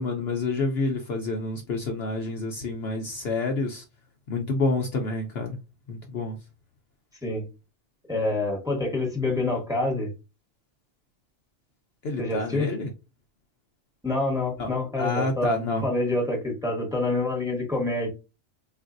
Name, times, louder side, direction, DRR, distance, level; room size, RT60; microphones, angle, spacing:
voice 1, 0.0-3.8 4.3-5.6 5.9-6.4 12.0-12.9 14.6-14.7 15.0-15.9, left 3 dB, 60° left, 0.8 m, -28 dB
voice 2, 8.1-10.1 12.2-12.7 14.0-18.1, left 2 dB, 5° right, 1.2 m, -27 dB
3.8 x 2.5 x 2.5 m
omnidirectional pair, 1.3 m